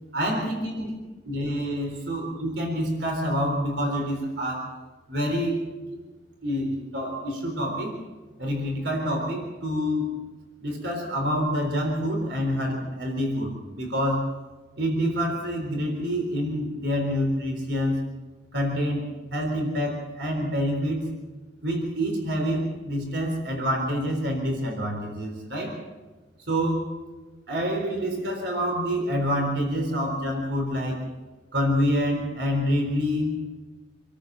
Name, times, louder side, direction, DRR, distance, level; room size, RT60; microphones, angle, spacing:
voice 1, 0.1-0.9 1.3-4.7 5.1-5.6 5.9-6.0 6.4-8.0 8.4-10.1 10.6-14.3 14.8-18.0 18.5-21.1 21.6-25.8 26.5-26.9 27.5-31.0 31.5-33.4, equal, 70° right, 2 dB, 4.0 m, -27 dB
27.5 x 14.0 x 7.5 m, 1.2 s
head